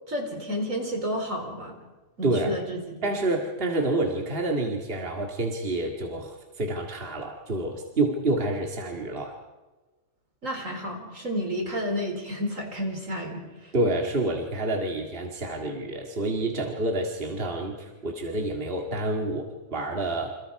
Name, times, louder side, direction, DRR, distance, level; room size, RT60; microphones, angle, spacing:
voice 1, 0.1-1.7 2.2-3.0 10.4-13.7, equal, 70° right, 2 dB, 4.7 m, -31 dB
voice 2, 2.2-2.5 3.0-9.4 13.7-20.3, right 2 dB, 45° right, 2 dB, 2.2 m, -28 dB
28.5 x 27.5 x 4.8 m, 1.2 s
omnidirectional pair, 1.4 m